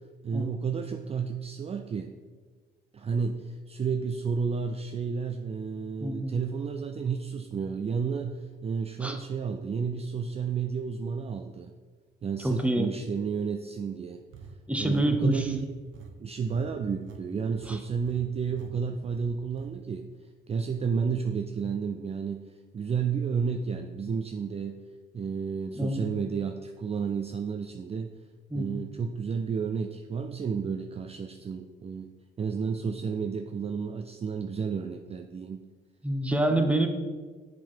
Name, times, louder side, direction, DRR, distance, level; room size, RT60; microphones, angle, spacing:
voice 1, 0.2-2.1 2.9-11.7 12.2-14.2 14.8-15.7 16.2-20.1 20.5-22.4 22.7-24.8 25.1-28.1 28.5-32.1 32.4-35.6, right 6 dB, 30° right, 6 dB, 0.4 m, -31 dB
voice 2, 6.0-6.3 9.0-9.2 12.4-12.9 14.7-15.5 17.7-17.8 25.7-26.1 28.5-28.8 36.0-36.9, right 1 dB, 5° right, 5 dB, 0.8 m, -27 dB
sound 1, 14.3-17.2 17.5-17.8 18.1-18.2 18.5-18.7 19.0-19.7, right 5 dB, 75° right, 0.8 m, -47 dB
7.3 x 3.9 x 4.5 m, 1.5 s
cardioid pair, 90°, 20 cm